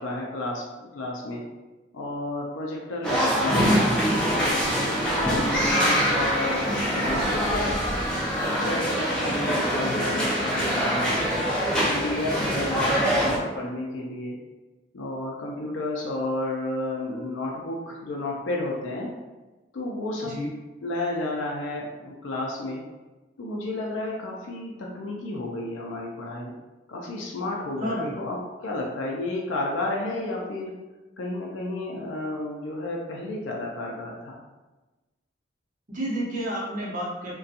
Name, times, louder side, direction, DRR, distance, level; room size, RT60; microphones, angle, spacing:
voice 1, 0.0-1.4 1.9-3.8 4.2-7.8 8.0-11.2 11.9-14.4 14.9-19.1 19.7-20.3 20.8-22.8 23.4-26.5 26.9-30.7 31.2-34.4, left 2 dB, 85° left, -2 dB, 0.4 m, -32 dB
sound 1, 3.0-13.4, equal, 5° left, 0.4 m, -24 dB
voice 2, 27.8-28.1 35.9-37.3, equal, 40° right, -5 dB, 0.7 m, -31 dB
2.6 x 2.2 x 2.4 m, 1.2 s
head